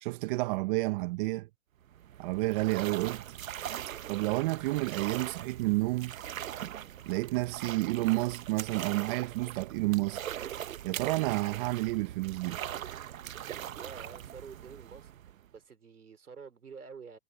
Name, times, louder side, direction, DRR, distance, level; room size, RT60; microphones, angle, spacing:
voice 1, 0.0-1.5 2.2-3.2 4.1-6.1 7.1-10.2 10.8-12.6, right 22 dB, 35° right, 1.2 m, -30 dB
sound 1, 1.8-15.6, right 11 dB, 65° right, 1.3 m, -41 dB
voice 2, 13.8-15.1 15.5-17.2, right 5 dB, 90° right, 4.2 m, -48 dB
hypercardioid pair, 130°, 43 cm